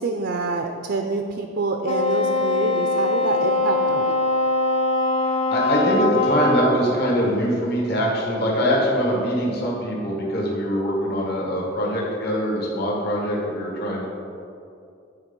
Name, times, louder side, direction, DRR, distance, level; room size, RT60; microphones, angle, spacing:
voice 1, 0.0-4.1, right 3 dB, 55° right, 4 dB, 0.4 m, -26 dB
Wind instrument woodwind instrument, 1.8-6.9, left 2 dB, 30° left, 0.4 m, -22 dB
voice 2, 5.2-14.1, equal, 50° left, -4 dB, 1.6 m, -23 dB
8.7 x 4.5 x 5.2 m, 2.5 s
head